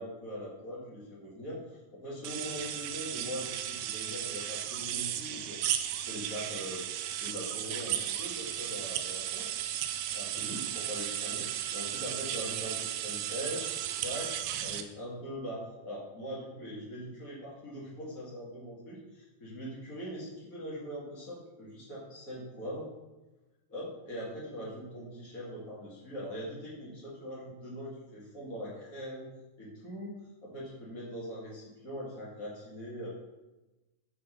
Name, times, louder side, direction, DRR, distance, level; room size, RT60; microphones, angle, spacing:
voice 1, 0.0-1.6 1.9-5.6 6.1-6.8 7.2-9.5 10.1-11.5 11.7-13.7 14.0-22.9 23.7-29.3 29.6-30.1 30.4-33.1, equal, 45° left, -5 dB, 1.1 m, -41 dB
sound 1, 2.2-14.8, right 11 dB, 80° right, 2.2 m, -35 dB
7.6 x 3.9 x 6.6 m, 1.1 s
omnidirectional pair, 4.9 m